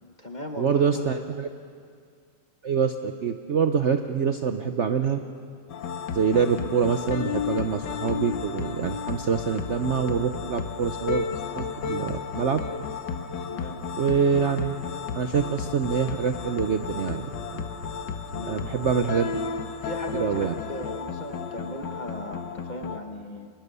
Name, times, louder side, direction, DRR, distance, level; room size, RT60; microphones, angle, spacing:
voice 1, 0.0-1.2 13.5-13.8 18.3-18.7 19.8-23.5, left 1 dB, 30° left, 4 dB, 1.1 m, -37 dB
voice 2, 0.6-1.5 2.6-5.2 6.1-11.3 11.5-12.6 14.0-14.8 15.1-17.7 18.5-19.3 20.2-20.5, right 6 dB, 55° right, 7 dB, 0.8 m, -25 dB
sound 1, 5.7-23.0, left 6 dB, 70° left, 1.7 m, -33 dB
24.5 x 21.0 x 6.9 m, 2.1 s
omnidirectional pair, 2.0 m